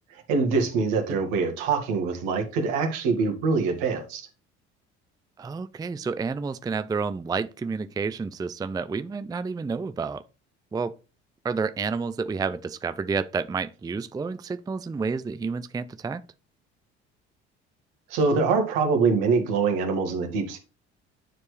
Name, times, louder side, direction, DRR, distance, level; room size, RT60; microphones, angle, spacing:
voice 1, 0.1-4.3 18.1-20.6, right 4 dB, 70° right, 1.9 m, -24 dB
voice 2, 5.4-10.2 10.7-11.0 11.4-16.2, right 5 dB, 10° right, 0.4 m, -30 dB
9.8 x 4.5 x 3.3 m
hypercardioid pair, 60°, 32 cm